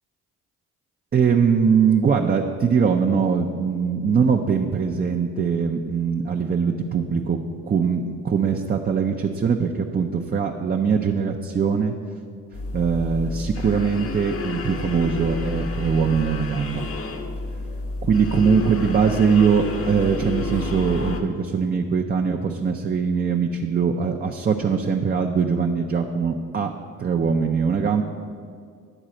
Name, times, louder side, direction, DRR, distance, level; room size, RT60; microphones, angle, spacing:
voice 1, 1.1-7.4 7.7-11.9 12.7-16.9 18.0-26.7 27.0-28.0, right 6 dB, 30° right, 2 dB, 0.5 m, -22 dB
sound 1, 12.5-21.2, left 3 dB, 50° left, 0.9 m, -30 dB
10.0 x 4.0 x 7.5 m, 2.3 s
cardioid pair, 90°, 30 cm